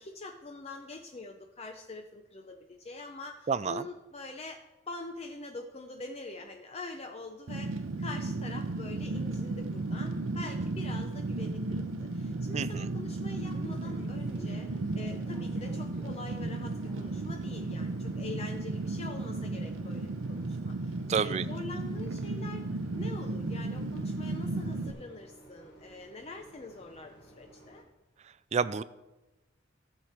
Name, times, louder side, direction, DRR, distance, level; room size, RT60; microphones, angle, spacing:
voice 1, 0.0-22.6 23.0-27.8, left 3 dB, 30° left, 4 dB, 0.5 m, -44 dB
voice 2, 3.5-3.8 12.5-12.9 21.1-21.4 28.5-28.8, right 6 dB, 30° right, 16 dB, 0.3 m, -29 dB
Fire, 7.5-24.9, right 2 dB, 70° right, 0.7 m, -34 dB
Bus, 8.6-27.8, equal, 60° left, 3.1 m, -55 dB
14.5 x 6.6 x 4.3 m, 1.0 s
head